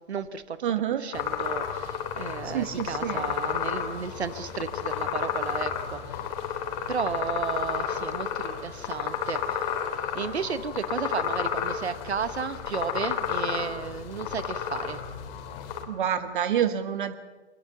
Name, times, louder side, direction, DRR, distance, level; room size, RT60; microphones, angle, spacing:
voice 1, 0.0-0.6 1.0-6.3 6.9-9.7 10.1-15.0, right 6 dB, 65° right, 13 dB, 1.5 m, -33 dB
voice 2, 0.6-1.1 2.4-3.3 15.9-17.1, right 9 dB, 45° right, 10 dB, 1.4 m, -27 dB
sound 1, 1.1-15.8, left 8 dB, 30° left, 3.4 m, -32 dB
24.0 x 20.5 x 7.1 m, 1.3 s
figure-of-eight pair, 125°, 35 cm